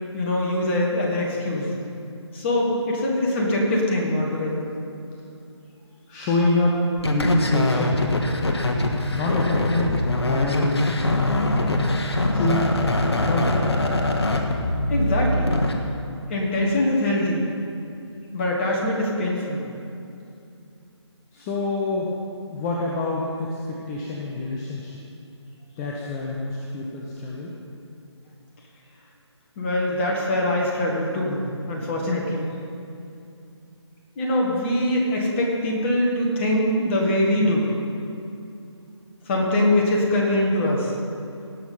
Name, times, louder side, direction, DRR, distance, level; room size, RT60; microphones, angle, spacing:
voice 1, 0.1-1.7 2.3-4.7 14.9-15.6 16.3-17.5 18.3-19.6 29.6-32.5 34.2-37.7 39.3-40.9, left 1 dB, 25° left, -2 dB, 1.9 m, -23 dB
voice 2, 6.1-8.0 9.1-10.9 12.3-12.7 13.2-13.7 21.3-22.1 22.5-25.0 25.8-27.5, left 2 dB, 10° left, -3 dB, 0.4 m, -26 dB
sound 1, 7.0-15.8, left 1 dB, 60° left, 1.3 m, -23 dB
17.5 x 6.2 x 5.5 m, 2.6 s
figure-of-eight pair, 150°, 15 cm